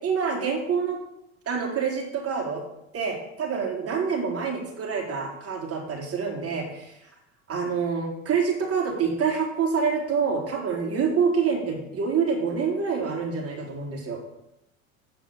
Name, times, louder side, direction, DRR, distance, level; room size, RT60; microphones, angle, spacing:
voice 1, 0.0-1.0 1.5-2.6 2.9-6.9 7.5-14.2, right 6 dB, 35° right, -1 dB, 3.9 m, -26 dB
8.6 x 7.3 x 8.0 m, 0.84 s
hypercardioid pair, 80°, 41 cm